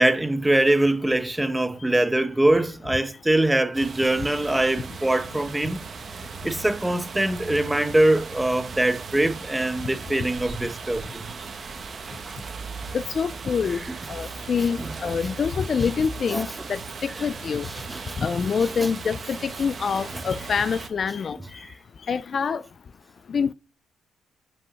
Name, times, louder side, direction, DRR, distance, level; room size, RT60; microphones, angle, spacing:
voice 1, 0.0-5.8 6.4-11.3 14.8-14.9 16.3-16.5 17.8-18.2 21.6-21.7, right 1 dB, 10° right, 0.9 m, -23 dB
sound 1, 3.7-20.9, right 5 dB, 40° right, 1.2 m, -38 dB
voice 2, 12.9-13.8 14.1-17.6 18.2-21.4 22.1-22.6 23.3-23.5, left 6 dB, 45° left, 0.3 m, -26 dB
5.5 x 5.3 x 5.5 m
cardioid pair, 90°, 0 cm